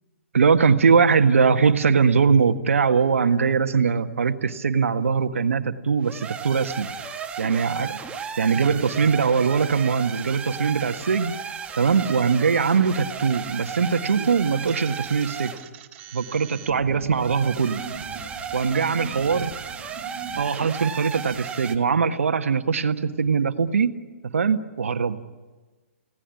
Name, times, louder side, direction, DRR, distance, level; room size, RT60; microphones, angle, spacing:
voice 1, 0.3-6.9 7.4-8.0 8.4-11.4 11.8-15.5 16.1-17.8 18.5-19.5 20.4-23.9 24.2-25.2, right 5 dB, 75° right, 8 dB, 1.5 m, -21 dB
sound 1, 6.0-15.7 17.1-21.8, right 6 dB, 15° right, 1.7 m, -35 dB
sound 2, 14.7-20.5, right 7 dB, 35° right, 2.1 m, -42 dB
30.0 x 18.0 x 9.8 m, 1.3 s
figure-of-eight pair, 125°, 7 cm